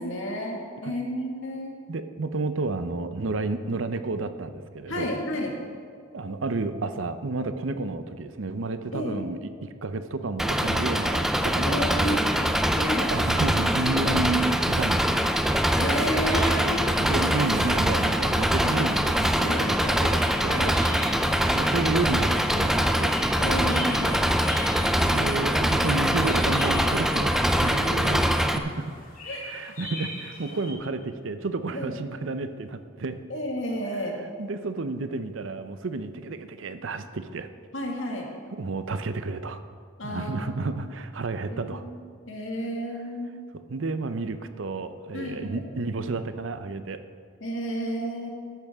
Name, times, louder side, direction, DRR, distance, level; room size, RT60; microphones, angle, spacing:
voice 1, 0.0-1.7 4.9-5.5 8.9-9.2 11.6-12.5 12.8-13.1 15.8-17.0 19.4-20.0 20.5-20.7 23.4-24.3 27.6-28.2 29.3-29.4 31.7-32.0 33.3-34.2 37.7-38.3 40.0-40.4 41.5-41.9 42.3-43.4 45.1-45.7 47.4-48.3, equal, 70° left, 0 dB, 1.9 m, -31 dB
voice 2, 1.9-5.1 6.1-12.2 13.1-15.3 17.0-20.7 21.5-23.2 25.0-28.2 28.6-28.9 29.4-33.2 34.4-37.5 38.5-39.6 40.0-41.8 43.7-47.0, right 3 dB, 70° right, 10 dB, 0.6 m, -31 dB
Engine, 10.4-28.6, equal, ahead, 0.4 m, -23 dB
sound 1, 16.2-30.7, left 1 dB, 45° left, 2.5 m, -42 dB
14.0 x 10.5 x 3.6 m, 2.1 s
head